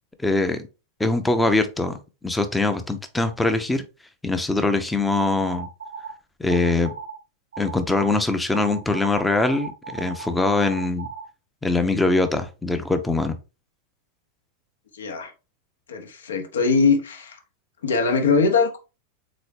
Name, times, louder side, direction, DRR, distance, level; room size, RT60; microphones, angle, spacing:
voice 1, 0.2-0.6 1.0-2.0 2.2-3.8 4.2-5.7 6.4-6.9 7.6-11.1 11.6-13.4, left 2 dB, 5° left, 0.6 m, -22 dB
sound 1, 5.2-6.1 6.5-7.2 7.5-8.2 8.5-11.3, right 6 dB, 65° right, 0.5 m, -36 dB
voice 2, 14.9-15.3 15.9-17.4 17.8-18.8, left 4 dB, 65° left, 0.8 m, -21 dB
4.0 x 3.9 x 3.2 m
figure-of-eight pair, 90°, 0 cm